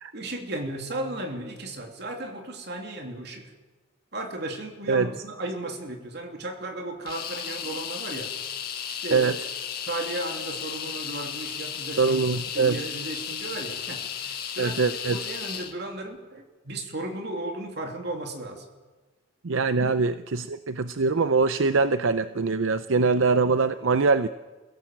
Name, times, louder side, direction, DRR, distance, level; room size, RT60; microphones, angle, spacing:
voice 1, 0.1-3.5 4.1-8.4 8.9-9.3 9.9-12.3 12.5-18.6 19.8-19.9, right 1 dB, 55° right, 3 dB, 3.0 m, -35 dB
sound 1, 7.1-15.7, left 8 dB, 45° left, 1.8 m, -34 dB
voice 2, 12.0-12.8 14.6-15.2 19.4-24.3, right 4 dB, 75° right, 12 dB, 0.6 m, -23 dB
27.5 x 16.5 x 7.5 m, 1.3 s
head